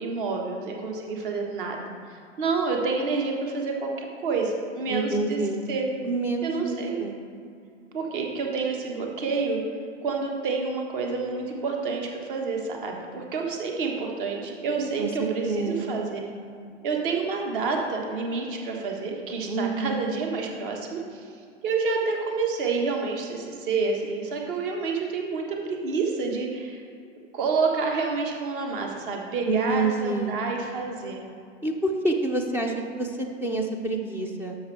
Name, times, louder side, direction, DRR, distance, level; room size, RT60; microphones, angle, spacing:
voice 1, 0.0-1.8 2.4-5.4 5.7-5.9 6.4-7.0 7.9-9.6 10.0-16.2 16.8-21.3 21.6-26.8 27.3-31.2, right 4 dB, 50° right, 1 dB, 1.5 m, -28 dB
voice 2, 4.9-5.6 6.0-7.2 14.8-16.1 19.5-20.0 29.5-30.4 31.6-34.6, right 2 dB, 5° right, 2 dB, 0.4 m, -28 dB
12.5 x 6.4 x 3.3 m, 2.4 s
figure-of-eight pair, 95°, 34 cm